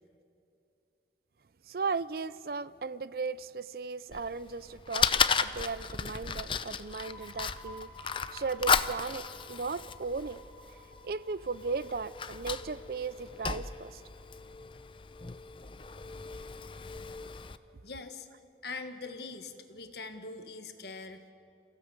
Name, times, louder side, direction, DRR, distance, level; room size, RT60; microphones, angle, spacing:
voice 1, 1.7-5.1 5.4-10.4 11.0-14.0, right 4 dB, 55° right, 0.5 m, -36 dB
Fire, 4.1-17.6, left 6 dB, 30° left, 0.6 m, -34 dB
sound 1, 6.7-14.2, left 1 dB, 5° left, 2.7 m, -53 dB
voice 2, 17.6-18.3 18.6-21.3, left 3 dB, 65° left, 1.6 m, -43 dB
29.0 x 16.0 x 8.2 m
head